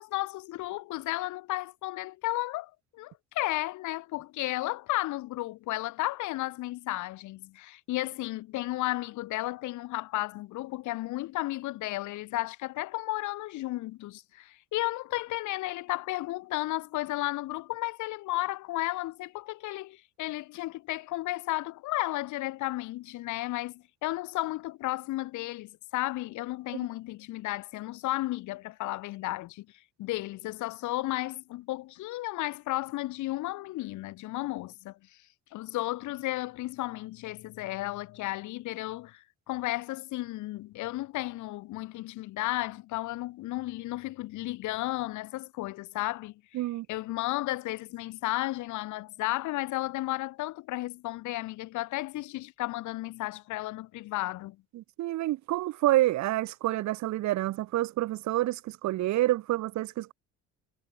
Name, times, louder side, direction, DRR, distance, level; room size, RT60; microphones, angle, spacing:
voice 1, 0.0-29.7 30.0-35.0 35.5-46.4 46.9-54.6, left 17 dB, 75° left, 1.3 m, -33 dB
voice 2, 46.5-46.9 54.7-60.1, right 16 dB, 70° right, 1.3 m, -28 dB
cardioid pair, 130°, 30 cm